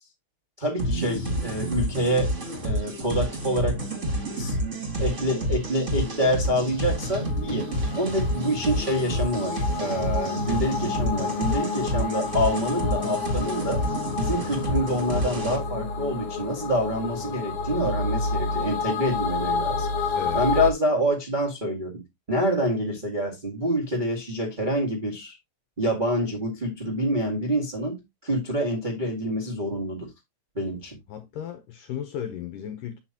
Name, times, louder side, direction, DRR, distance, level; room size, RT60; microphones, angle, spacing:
voice 1, 0.6-2.3 2.6-3.8 4.3-4.5 5.0-7.7 7.9-13.8 14.1-19.9 20.3-22.0 22.3-25.4 25.8-30.1 30.5-31.0, equal, 75° right, 0.4 m, -27 dB
sound 1, 0.8-15.6, equal, 30° right, 1.4 m, -29 dB
sound 2, 5.8-20.7, left 4 dB, 50° left, 2.0 m, -30 dB
voice 2, 31.1-33.0, left 9 dB, 75° left, 2.0 m, -35 dB
8.8 x 6.5 x 2.9 m
omnidirectional pair, 4.9 m